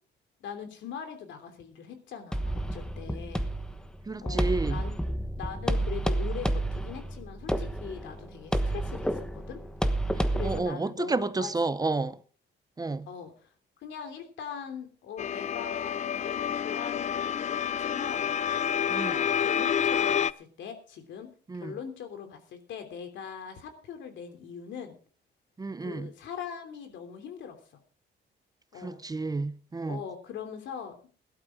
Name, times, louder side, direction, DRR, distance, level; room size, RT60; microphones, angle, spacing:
voice 1, 0.4-3.5 4.2-4.9 5.4-9.6 10.0-11.5 13.1-13.5 13.8-18.3 18.8-25.0 25.8-27.6 28.7-29.0 29.9-31.1, left 7 dB, 80° left, 3.2 m, -41 dB
sound 1, 2.3-10.6, right 1 dB, 5° left, 1.2 m, -30 dB
voice 2, 4.1-4.8 10.2-12.2 12.8-13.1 18.9-19.2 21.5-21.7 25.6-26.1 28.8-30.0, right 3 dB, 20° right, 0.7 m, -31 dB
sound 2, 15.2-20.3, left 8 dB, 40° left, 0.5 m, -28 dB
17.5 x 12.0 x 3.8 m
cardioid pair, 110°, 19 cm